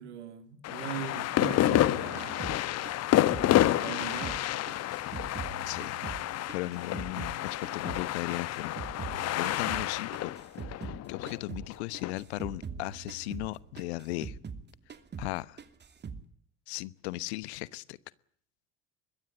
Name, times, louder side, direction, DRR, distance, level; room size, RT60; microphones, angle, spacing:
voice 1, 0.0-2.5 3.8-4.5 9.6-9.9, right 8 dB, 75° right, 3.3 m, -40 dB
sound 1, 0.6-12.1, left 14 dB, 45° left, 1.3 m, -29 dB
sound 2, 1.7-4.4 4.7-7.4 7.6-11.0 11.3-11.7 11.9-14.6 14.9-15.3 15.6-16.2, right 6 dB, 30° right, 2.7 m, -42 dB
voice 2, 5.7-6.2 6.5-10.3 10.8-14.4 15.2-15.6 16.7-18.0, left 19 dB, 65° left, 1.1 m, -37 dB
24.5 x 21.5 x 9.0 m
figure-of-eight pair, 60°, 35 cm